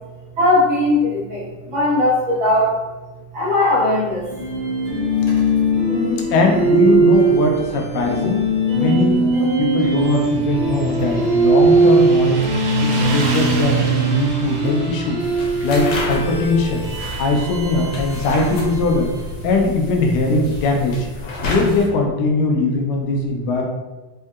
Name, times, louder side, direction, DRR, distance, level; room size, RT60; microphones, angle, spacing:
voice 1, 0.4-2.8 3.3-4.3 5.1-5.2 6.2-6.3, left 2 dB, 60° right, -9 dB, 1.3 m, -18 dB
sound 1, 4.3-19.4, right 2 dB, 40° left, 1.1 m, -20 dB
voice 2, 5.9-8.4 8.8-12.4 12.8-15.2 15.6-16.9 17.2-19.1 19.4-21.1 21.4-23.6, left 3 dB, 90° left, 1 dB, 2.2 m, -20 dB
Motorcycle, 9.8-20.9, right 5 dB, 80° right, 2.0 m, -27 dB
sound 2, 15.2-21.9, left 2 dB, 65° left, 1.8 m, -30 dB
5.3 x 2.7 x 2.3 m, 1.2 s
omnidirectional pair, 3.7 m